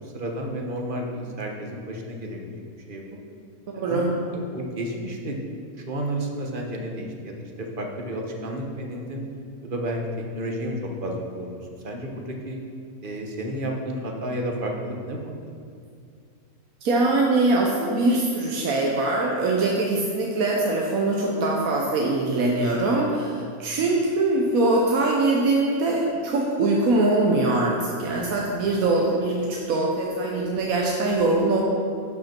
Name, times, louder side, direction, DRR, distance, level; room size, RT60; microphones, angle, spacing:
voice 1, 0.1-2.6 2.9-3.0 3.7-4.1 4.3-5.4 5.9-9.2 9.6-10.0 10.3-11.5 11.8-12.6 13.0-15.5, right 1 dB, 40° right, 1 dB, 1.1 m, -31 dB
voice 2, 3.7-4.1 16.8-31.6, right 2 dB, 70° right, -2 dB, 1.3 m, -22 dB
11.5 x 6.1 x 4.4 m, 2.2 s
omnidirectional pair, 1.6 m